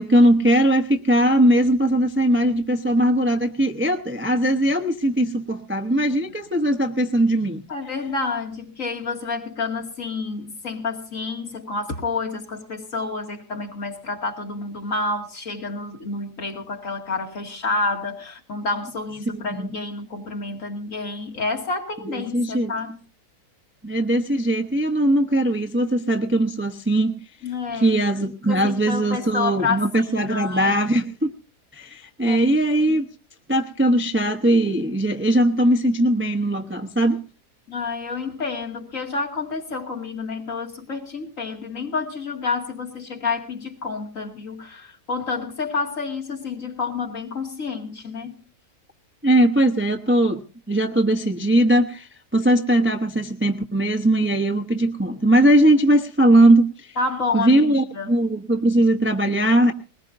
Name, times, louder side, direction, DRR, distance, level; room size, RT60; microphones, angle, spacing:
voice 1, 0.0-7.6 19.3-19.8 22.0-22.7 23.8-27.2 27.8-31.3 31.7-33.1 33.5-37.2 49.2-57.0 57.3-59.7, right 1 dB, 10° right, 0.7 m, -20 dB
voice 2, 7.7-23.0 27.4-28.0 28.5-30.8 32.3-32.4 37.7-48.4 57.0-58.1, left 4 dB, 55° left, 2.6 m, -29 dB
21.0 x 19.5 x 2.6 m
omnidirectional pair, 1.7 m